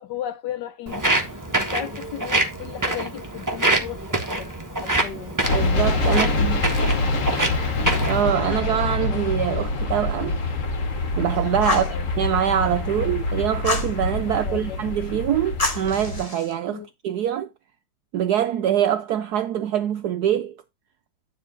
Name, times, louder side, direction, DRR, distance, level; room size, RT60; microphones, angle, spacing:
voice 1, 0.0-4.5 4.8-5.4 6.1-6.5 6.8-6.9 11.7-12.1 14.4-14.8 16.7-16.9, left 10 dB, 70° left, 1.1 m, -35 dB
Walk footsteps, 0.9-8.2, right 2 dB, 15° right, 0.8 m, -26 dB
sound 1, 5.4-16.2, left 2 dB, 45° left, 1.5 m, -25 dB
voice 2, 5.5-6.6 8.1-10.4 11.2-11.8 12.2-17.5 18.1-20.6, right 10 dB, 75° right, 0.9 m, -24 dB
Fire, 11.6-12.0 13.6-13.9 15.6-16.5, left 3 dB, 30° left, 0.7 m, -26 dB
9.9 x 3.5 x 5.1 m
omnidirectional pair, 2.2 m